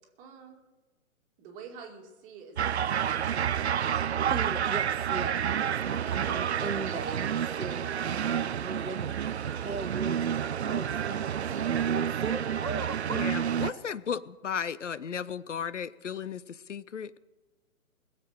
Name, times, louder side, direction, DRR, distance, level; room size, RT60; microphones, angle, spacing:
voice 1, 0.2-0.6 1.4-3.9 6.0-6.2 7.4-7.7 12.3-12.7 13.4-13.8, right 6 dB, 20° right, 2 dB, 2.2 m, -48 dB
sound 1, 2.6-13.7, right 9 dB, 50° right, 0.5 m, -29 dB
voice 2, 4.3-13.5, right 3 dB, 85° right, 10 dB, 1.3 m, -39 dB
voice 3, 13.1-17.2, left 7 dB, 60° left, 17 dB, 0.7 m, -35 dB
21.0 x 7.6 x 6.4 m, 1.2 s
figure-of-eight pair, 130°, 42 cm